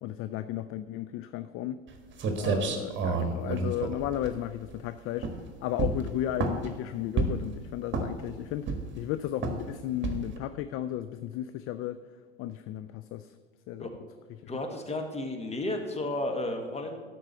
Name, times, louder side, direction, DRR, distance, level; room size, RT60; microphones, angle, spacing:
voice 1, 0.0-1.8 2.3-5.3 5.6-8.7 9.0-12.0 12.4-13.3 13.7-13.9 14.4-14.5, left 12 dB, 45° left, 12 dB, 0.4 m, -34 dB
sound 1, 1.9-2.0 2.2-4.8 5.2-5.5 5.8-6.7 7.2-7.5 7.9-8.3 8.7-9.0 9.4-9.7 10.0-10.4, right 4 dB, 40° right, 1.5 m, -29 dB
voice 2, 14.5-17.0, left 1 dB, 20° left, 4 dB, 1.7 m, -33 dB
12.0 x 4.7 x 6.8 m, 1.5 s
figure-of-eight pair, 65°, 31 cm